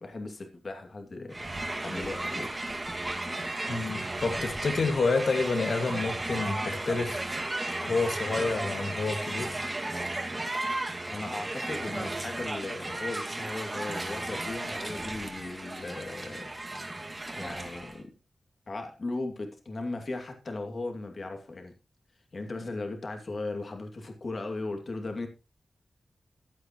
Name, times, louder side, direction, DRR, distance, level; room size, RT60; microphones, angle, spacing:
voice 1, 0.0-1.4 1.8-2.5 11.1-16.8 17.3-18.1 18.7-21.7 22.3-25.3, left 2 dB, 45° left, 2.5 m, -37 dB
Crowd, 1.3-18.0, right 2 dB, 20° right, 2.1 m, -34 dB
voice 2, 3.7-7.4 7.8-9.5, left 3 dB, 65° left, 2.1 m, -29 dB
15.5 x 11.5 x 3.1 m
wide cardioid pair, 150°, 0 cm